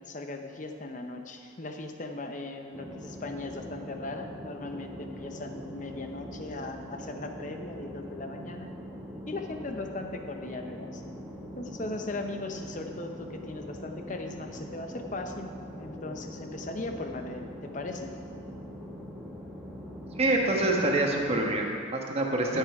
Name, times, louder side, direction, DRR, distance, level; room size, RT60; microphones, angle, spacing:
voice 1, 0.0-8.7 9.3-11.0 11.6-15.5 15.8-18.1, left 2 dB, 40° left, 5 dB, 0.8 m, -38 dB
sound 1, 2.7-21.6, equal, 5° right, 1.2 m, -42 dB
voice 2, 20.2-22.6, right 2 dB, 30° right, 0 dB, 1.2 m, -26 dB
12.5 x 7.5 x 4.8 m, 2.3 s
head